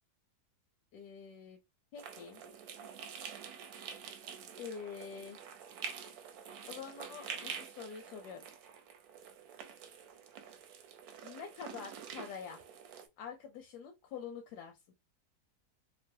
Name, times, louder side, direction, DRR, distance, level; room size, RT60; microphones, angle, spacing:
voice 1, 0.9-1.6 1.9-2.4 4.6-5.4 6.7-8.5 11.2-12.6 13.2-14.7, left 7 dB, 85° left, 1.1 m, -46 dB
sound 1, 2.0-13.1, right 7 dB, 75° right, 1.0 m, -47 dB
3.1 x 2.0 x 2.6 m
omnidirectional pair, 1.7 m